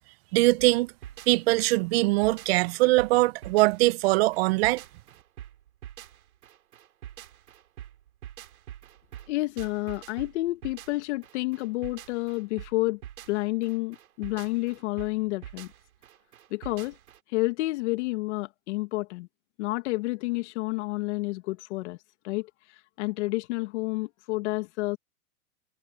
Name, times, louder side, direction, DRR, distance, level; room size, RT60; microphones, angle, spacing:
voice 1, 0.3-0.9 1.3-4.8, right 21 dB, 45° right, 0.8 m, -22 dB
sound 1, 0.6-17.2, right 11 dB, 80° right, 3.2 m, -46 dB
voice 2, 9.3-13.0 13.3-15.7 16.5-17.0 17.3-19.3 19.6-22.0 22.2-25.0, left 21 dB, 55° left, 1.8 m, -30 dB
hypercardioid pair, 130°, 43 cm